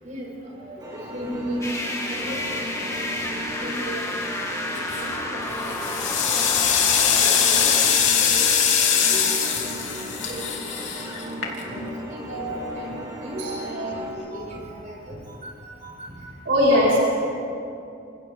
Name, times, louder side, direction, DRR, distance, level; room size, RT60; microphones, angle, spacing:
voice 1, 0.0-0.8 1.1-4.3 4.7-7.9 8.2-8.4 8.9-10.6 10.9-11.0 11.3-11.4 11.7-12.5 12.7-12.9 13.2-16.1, equal, 40° right, -5 dB, 6.9 m, -37 dB
sound 1, 0.8-14.1, equal, 20° right, 4.3 m, -37 dB
sound 2, 1.6-7.9, left 1 dB, 15° left, 2.1 m, -31 dB
sound 3, 4.8-5.2 5.6-11.9, left 7 dB, 85° left, 3.0 m, -22 dB
voice 2, 12.3-12.7 13.4-14.0 16.5-17.2, equal, 70° right, -8 dB, 5.3 m, -21 dB
27.0 x 26.0 x 3.8 m, 2.6 s
head